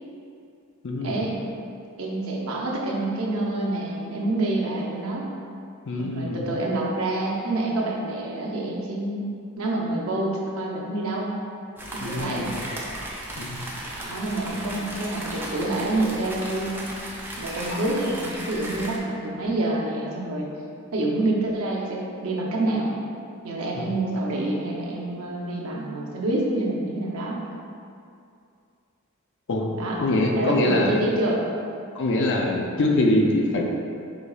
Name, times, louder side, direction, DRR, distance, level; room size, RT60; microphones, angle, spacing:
voice 1, 0.8-1.2 5.9-6.5 12.0-12.6 13.4-13.7 17.7-17.8 23.7-23.9 29.5-29.6 30.0-31.0 31.9-33.6, left 2 dB, 60° left, 0 dB, 0.5 m, -24 dB
voice 2, 2.0-5.3 6.0-9.3 9.6-11.3 11.9-12.5 14.0-16.8 17.4-20.5 20.9-22.9 23.4-27.4 29.7-30.0 30.3-31.4, right 2 dB, 75° right, -3 dB, 0.7 m, -27 dB
sound 1, 11.8-19.0, right 1 dB, 10° right, 0.5 m, -35 dB
5.0 x 3.9 x 2.4 m, 2.4 s
head